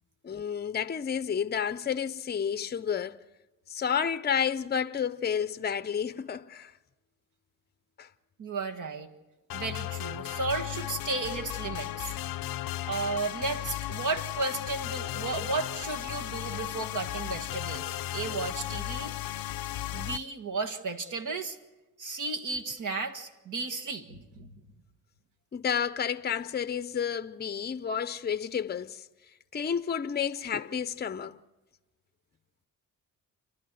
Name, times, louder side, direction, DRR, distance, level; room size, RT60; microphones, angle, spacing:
voice 1, 0.2-3.2 3.7-6.7 8.0-8.1 25.5-29.1 29.5-31.4, left 7 dB, 30° left, 0.6 m, -31 dB
voice 2, 8.4-9.1 9.5-12.1 12.9-19.2 19.9-21.6 22.0-24.5, right 3 dB, 60° right, 1.7 m, -34 dB
sound 1, 9.5-20.2, left 14 dB, 85° left, 0.6 m, -35 dB
29.0 x 12.0 x 7.8 m
cardioid pair, 90°, 34 cm